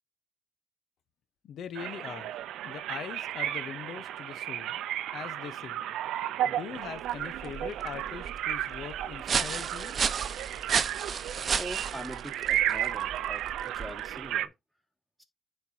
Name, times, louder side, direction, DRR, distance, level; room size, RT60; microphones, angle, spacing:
voice 1, 1.4-2.3 2.6-4.8 5.1-5.8 6.4-9.9, left 8 dB, 70° left, 0.9 m, -42 dB
sound 1, 1.7-14.5, right 12 dB, 85° right, 0.5 m, -33 dB
sound 2, 6.8-14.3, right 6 dB, 45° right, 0.8 m, -34 dB
voice 2, 11.2-14.5 15.2-15.3, right 1 dB, ahead, 2.3 m, -43 dB
10.5 x 4.5 x 2.8 m
cardioid pair, 90°, 0 cm